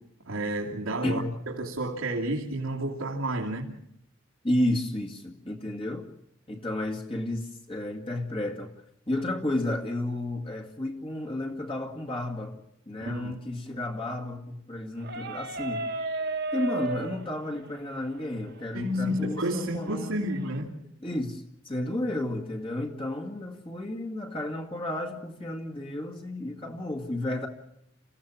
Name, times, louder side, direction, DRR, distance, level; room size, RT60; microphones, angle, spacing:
voice 1, 0.3-3.7 13.0-13.4 18.7-20.7, right 1 dB, 90° right, 2.8 m, -30 dB
voice 2, 1.0-1.3 4.4-6.1 6.5-8.7 9.1-12.6 12.9-15.8 16.5-20.2 21.0-27.5, left 1 dB, 25° left, 2.1 m, -32 dB
sound 1, 15.0-20.6, right 2 dB, 50° right, 1.7 m, -36 dB
28.0 x 16.0 x 7.4 m
head